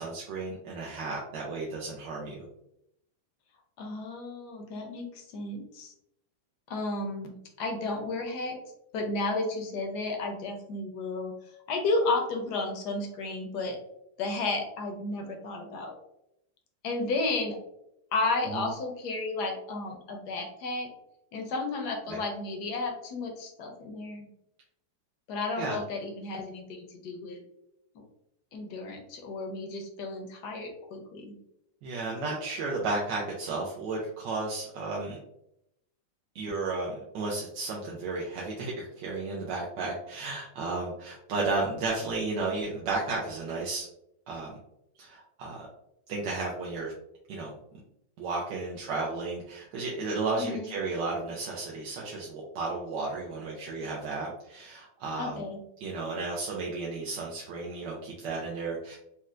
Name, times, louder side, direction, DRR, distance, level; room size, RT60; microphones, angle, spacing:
voice 1, 0.0-2.5 18.4-18.7 22.1-22.2 25.6-25.8 31.8-35.2 36.3-43.9 44.3-44.5 45.0-45.7 46.1-46.9 47.3-47.5 48.2-55.5 55.8-59.0, right 3 dB, 75° right, -3 dB, 1.2 m, -33 dB
voice 2, 3.8-5.9 6.7-8.6 8.9-13.8 14.2-16.0 16.8-17.6 18.1-20.9 21.3-24.3 25.3-27.4 27.9-28.0 28.5-31.3 50.4-50.7 55.2-55.6, left 3 dB, 70° left, 3 dB, 1.1 m, -33 dB
4.2 x 2.1 x 2.3 m, 0.79 s
omnidirectional pair, 2.0 m